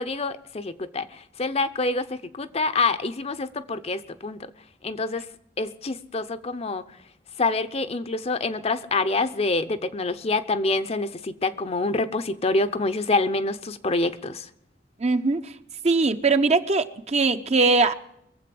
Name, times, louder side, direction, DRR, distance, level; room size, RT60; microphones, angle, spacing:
voice 1, 0.0-4.5 4.8-5.3 5.6-6.8 7.4-14.5, left 3 dB, 35° left, 0.7 m, -26 dB
voice 2, 15.0-15.5 15.8-17.9, right 3 dB, 40° right, 0.7 m, -21 dB
22.5 x 7.6 x 7.7 m
head